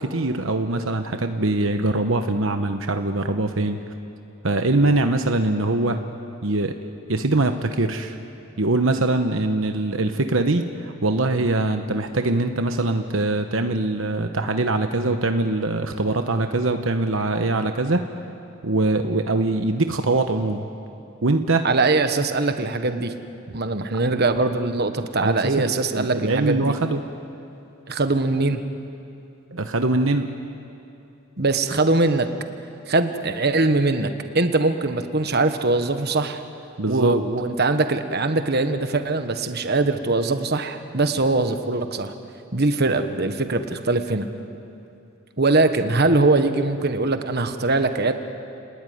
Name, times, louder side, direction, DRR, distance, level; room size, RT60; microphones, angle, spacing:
voice 1, 0.0-3.8 4.4-6.0 6.4-6.8 7.1-8.2 8.6-18.0 18.6-20.7 21.2-21.6 25.2-27.0 29.5-30.3 36.8-37.2, right 2 dB, 70° right, 6 dB, 1.1 m, -22 dB
voice 2, 21.6-23.1 23.5-26.7 27.9-28.6 31.4-32.3 32.9-36.4 36.9-42.1 42.5-44.3 45.4-48.1, right 3 dB, 50° right, 8 dB, 1.4 m, -22 dB
29.5 x 20.0 x 9.5 m, 2.7 s
head